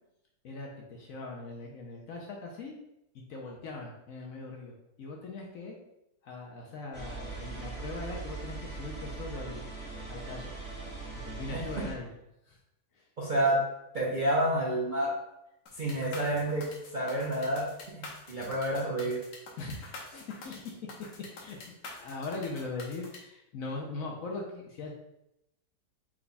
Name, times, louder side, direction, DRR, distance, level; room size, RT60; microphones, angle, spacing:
voice 1, 0.4-2.7 3.1-5.8 6.2-9.6 10.1-10.5 11.2-12.1 12.5-12.6 12.9-13.0 19.6-20.8 21.3-24.9, left 3 dB, 65° left, 0 dB, 0.9 m, -40 dB
sound 1, 6.9-11.9, right 3 dB, 10° right, 0.9 m, -40 dB
voice 2, 13.2-13.6 13.9-15.1 15.8-16.7 16.9-17.7 18.0-19.2, right 1 dB, 55° right, -6 dB, 0.5 m, -29 dB
sound 2, 15.7-23.2, left 3 dB, 85° left, 1.5 m, -46 dB
4.5 x 2.2 x 4.0 m, 0.86 s
omnidirectional pair, 1.8 m